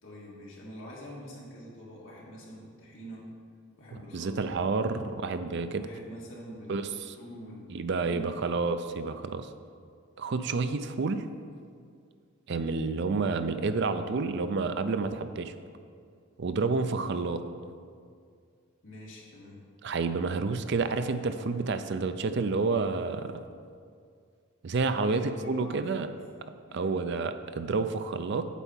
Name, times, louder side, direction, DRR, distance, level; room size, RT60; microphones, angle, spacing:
voice 1, 0.0-3.3 3.8-4.6 5.8-8.5 18.8-19.6 25.0-26.2 26.7-27.0, equal, 65° left, -4 dB, 2.1 m, -45 dB
voice 2, 4.1-5.8 6.7-7.1 7.7-9.5 10.2-11.2 12.5-15.5 16.4-17.4 19.8-23.4 24.6-26.1 26.7-28.5, right 4 dB, 55° right, 10 dB, 0.4 m, -29 dB
8.3 x 4.5 x 7.2 m, 2.2 s
head